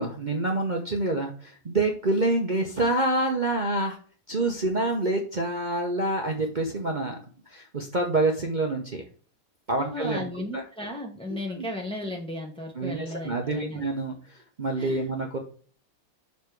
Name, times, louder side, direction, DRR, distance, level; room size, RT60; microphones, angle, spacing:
voice 1, 0.0-4.0 4.3-7.2 7.5-9.0 9.7-10.2 10.5-10.6 11.3-11.7 12.8-15.4, right 2 dB, 75° right, 1 dB, 0.4 m, -27 dB
voice 2, 9.8-13.9 14.8-15.0, left 1 dB, 10° left, 0 dB, 0.3 m, -35 dB
6.8 x 4.1 x 4.6 m, 0.42 s
omnidirectional pair, 2.3 m